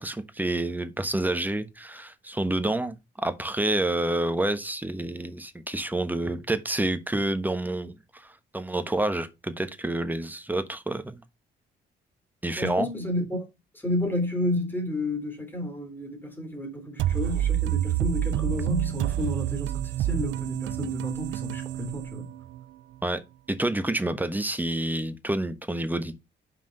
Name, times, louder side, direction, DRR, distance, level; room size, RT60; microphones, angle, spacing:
voice 1, 0.0-3.0 3.2-11.2 12.4-12.9 23.0-23.2 23.5-26.1, right 1 dB, 10° right, 1.2 m, -28 dB
voice 2, 12.6-13.4 13.8-19.7 20.0-22.3, left 1 dB, 10° left, 3.2 m, -31 dB
sound 1, 17.0-22.6, right 13 dB, 75° right, 0.4 m, -28 dB
6.0 x 4.9 x 5.1 m
cardioid pair, 90°, 20 cm